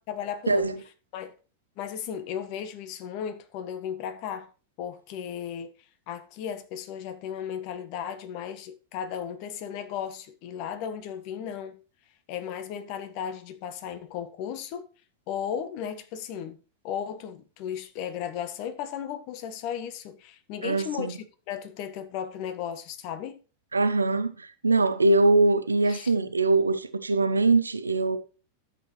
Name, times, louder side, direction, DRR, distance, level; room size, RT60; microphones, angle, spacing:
voice 1, 0.1-0.7 1.1-1.3 1.8-4.5 4.8-5.7 6.1-11.8 12.3-14.9 15.3-23.4 25.8-26.1, left 8 dB, 45° left, 1.3 m, -35 dB
voice 2, 20.6-21.2 23.7-28.2, right 3 dB, 80° right, 0.8 m, -23 dB
12.0 x 7.8 x 3.2 m
figure-of-eight pair, 90°, 0 cm